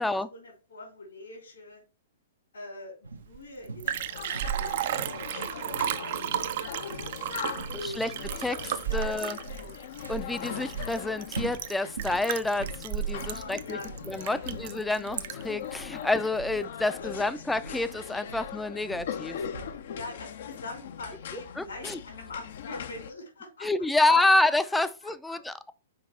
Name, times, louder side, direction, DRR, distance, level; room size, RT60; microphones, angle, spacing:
voice 1, 0.0-1.8 2.5-3.0 3.3-3.8 4.1-5.7 6.0-8.3 8.9-9.7 13.3-14.5 17.1-17.2 19.9-24.2 24.6-25.4, left 2 dB, 75° left, 3.2 m, -44 dB
sound 1, 3.0-19.9, right 4 dB, 80° right, 0.9 m, -43 dB
Liquid, 3.3-3.4 3.6-15.6 16.0-16.1, right 11 dB, 55° right, 0.6 m, -33 dB
Mess room sounds, 3.8-23.1, left 8 dB, 60° left, 0.7 m, -40 dB
voice 2, 8.9-9.4 10.1-13.8 14.1-19.4 21.6-22.0 23.6-25.7, left 2 dB, 5° left, 0.5 m, -28 dB
5.5 x 4.8 x 4.5 m
figure-of-eight pair, 110°, 0 cm